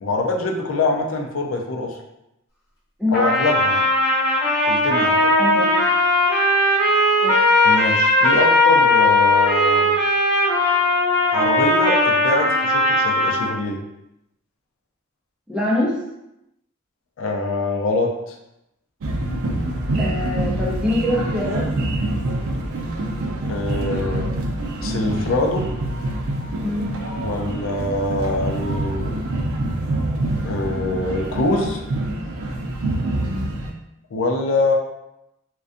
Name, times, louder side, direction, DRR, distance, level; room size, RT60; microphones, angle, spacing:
voice 1, 0.0-2.0 3.1-3.8 4.7-5.3 7.6-9.9 11.3-13.8 17.2-18.4 23.4-24.3 24.8-25.7 27.2-29.2 30.4-31.8 34.1-34.7, left 2 dB, 70° left, 1 dB, 0.4 m, -24 dB
Trumpet, 3.1-13.5, left 1 dB, 50° left, 1.0 m, -18 dB
voice 2, 5.4-5.8 7.2-7.4 8.3-8.4 15.5-16.0 20.0-21.7 26.6-27.0 33.2-33.5, left 1 dB, 5° right, -6 dB, 0.4 m, -24 dB
sound 1, 19.0-33.7, right 1 dB, 80° right, 0.4 m, -26 dB
2.5 x 2.2 x 2.4 m, 0.87 s
head